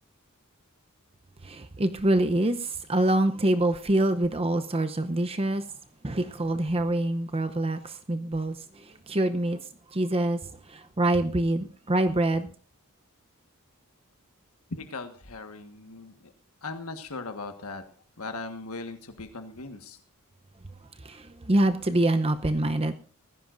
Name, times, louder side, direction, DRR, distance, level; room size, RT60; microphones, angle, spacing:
voice 1, 1.4-5.6 6.0-9.6 9.9-12.5 21.0-22.9, right 1 dB, 25° right, 0.8 m, -25 dB
voice 2, 14.7-16.3 16.6-17.8 18.2-20.0, left 3 dB, 75° left, 1.6 m, -38 dB
19.5 x 15.5 x 2.6 m
head